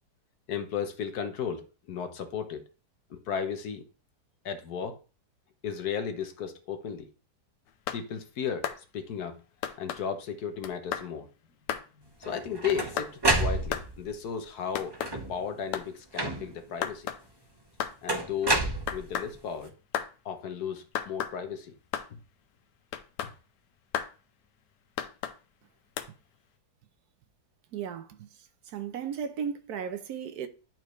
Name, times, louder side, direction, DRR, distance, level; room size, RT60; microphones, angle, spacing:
voice 1, 0.5-2.6 3.1-3.8 4.4-5.0 5.6-7.1 7.9-9.4 9.8-11.3 12.0-13.1 13.4-14.9 15.3-17.1 18.0-19.7 20.2-21.7 22.1-22.2 23.2-23.3, left 7 dB, 65° left, 1.4 m, -34 dB
sound 1, 7.7-8.0 8.6-8.8 9.6-10.0 10.6-11.1 11.7-11.9 12.7-13.1 13.7-13.9 14.7-15.2 15.7-15.9 16.8-17.2 17.8-18.0 18.9-19.3 19.9-20.1 20.9-21.4 21.9-22.1 22.9-23.3 23.9-24.1 25.0-25.4 26.0-26.1, left 9 dB, 80° left, 1.3 m, -33 dB
sound 2, 12.2-14.1 14.9-15.5 16.2-16.7 18.1-19.4, right 2 dB, 20° right, 0.6 m, -29 dB
voice 2, 27.7-30.5, right 7 dB, 70° right, 1.2 m, -36 dB
10.5 x 4.4 x 3.1 m
omnidirectional pair, 1.8 m